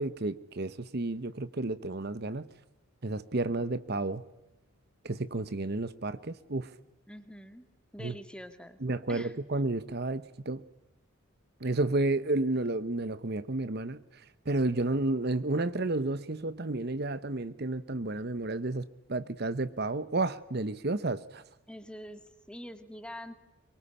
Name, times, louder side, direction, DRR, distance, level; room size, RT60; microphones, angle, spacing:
voice 1, 0.0-2.5 3.0-4.2 5.0-6.7 8.0-8.1 8.8-10.6 11.6-21.4, right 2 dB, 50° right, 0.9 m, -31 dB
voice 2, 7.1-7.7 7.9-8.8 9.1-9.4 21.7-23.3, equal, 5° left, 2.1 m, -45 dB
24.5 x 23.5 x 10.0 m
head